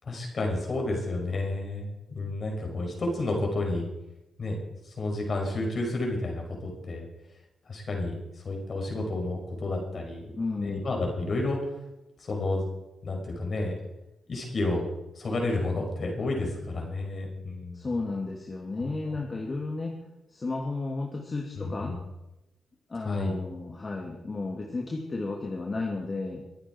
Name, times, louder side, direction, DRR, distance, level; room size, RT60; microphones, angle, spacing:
voice 1, 0.0-3.9 4.4-4.6 4.8-7.1 7.7-8.1 8.4-10.3 10.6-11.6 12.2-12.7 13.0-13.7 14.3-14.8 15.2-17.8 18.8-19.2 21.6-22.0 23.0-23.4, left 2 dB, 50° left, 1 dB, 5.5 m, -31 dB
voice 2, 10.4-10.8 17.7-20.0 20.3-22.0 22.9-26.4, left 3 dB, 35° left, -1 dB, 2.7 m, -33 dB
23.0 x 9.0 x 4.7 m, 0.94 s
supercardioid pair, 45°, 0 cm